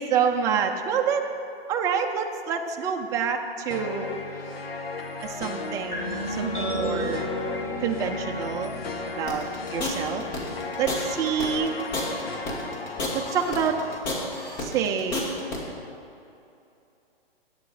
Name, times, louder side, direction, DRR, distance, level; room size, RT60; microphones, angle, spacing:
voice 1, 0.0-1.3 1.7-4.1 5.2-7.3 7.8-8.7 9.2-9.4 9.7-10.2 10.8-11.7 13.1-13.8 14.6-15.3, right 7 dB, 10° right, 3 dB, 0.5 m, -27 dB
sound 1, 3.7-14.0, left 3 dB, 80° left, 1.2 m, -35 dB
sound 2, 5.9-11.6, left 1 dB, 20° left, 2.4 m, -34 dB
sound 3, 9.3-15.6, left 2 dB, 45° left, 2.6 m, -31 dB
12.5 x 9.5 x 4.9 m, 2.7 s
hypercardioid pair, 140°, 30 cm